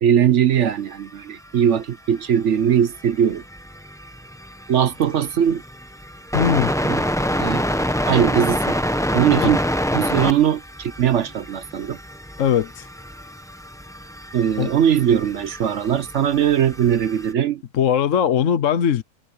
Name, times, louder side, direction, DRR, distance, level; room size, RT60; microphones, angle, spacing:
voice 1, 0.0-3.4 4.7-5.6 6.8-7.0 7.3-7.7 8.1-8.8 9.1-9.6 9.9-12.0 14.3-17.6, right 9 dB, 60° right, 0.9 m, -20 dB
sound 1, 1.6-1.7 2.1-2.2 2.6-17.3, equal, 5° left, 0.9 m, -27 dB
voice 2, 6.3-6.7 9.4-9.5 12.4-12.9 14.6-14.7 17.7-19.0, left 8 dB, 60° left, 1.1 m, -20 dB
omnidirectional pair, 1.6 m